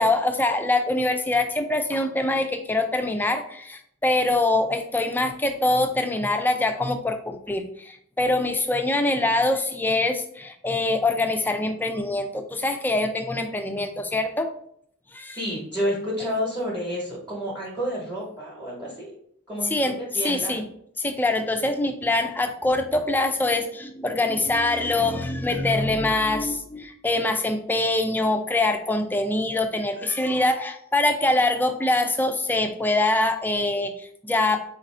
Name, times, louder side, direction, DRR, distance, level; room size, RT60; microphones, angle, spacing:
voice 1, 0.0-14.5 15.1-15.4 19.7-20.6 21.0-34.6, left 2 dB, 10° left, 6 dB, 0.3 m, -24 dB
voice 2, 15.3-19.1 19.5-20.5, equal, 10° right, -5 dB, 0.9 m, -30 dB
4.0 x 2.6 x 4.2 m, 0.68 s
head